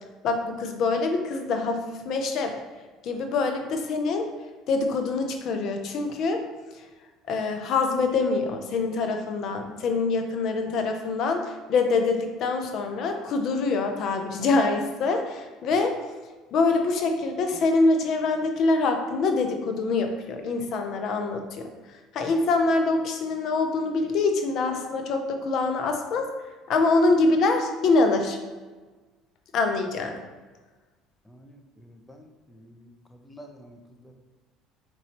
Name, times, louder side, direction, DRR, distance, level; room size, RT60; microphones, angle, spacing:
voice 1, 0.2-2.5 3.0-4.3 4.7-6.4 7.3-15.9 16.5-21.7 22.1-26.2 26.7-28.4 29.5-30.2, left 3 dB, 60° left, 5 dB, 0.5 m, -25 dB
voice 2, 31.3-34.1, equal, 15° left, 4 dB, 0.5 m, -50 dB
4.0 x 3.0 x 2.9 m, 1.3 s
supercardioid pair, 85°, 0 cm